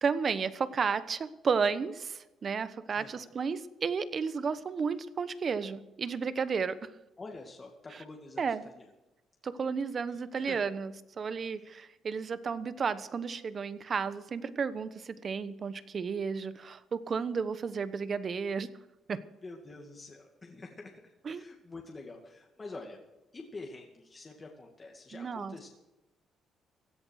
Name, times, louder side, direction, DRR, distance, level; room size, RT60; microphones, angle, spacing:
voice 1, 0.0-6.9 8.4-8.6 9.4-18.7 19.1-19.2 21.2-21.4 25.1-25.6, right 5 dB, 45° right, 13 dB, 1.1 m, -33 dB
voice 2, 3.0-3.3 7.2-8.9 10.1-10.6 11.6-11.8 19.4-23.0 23.3-25.7, left 3 dB, 30° left, 1 dB, 2.3 m, -47 dB
16.5 x 11.0 x 6.4 m, 0.98 s
cardioid pair, 90°, 0 cm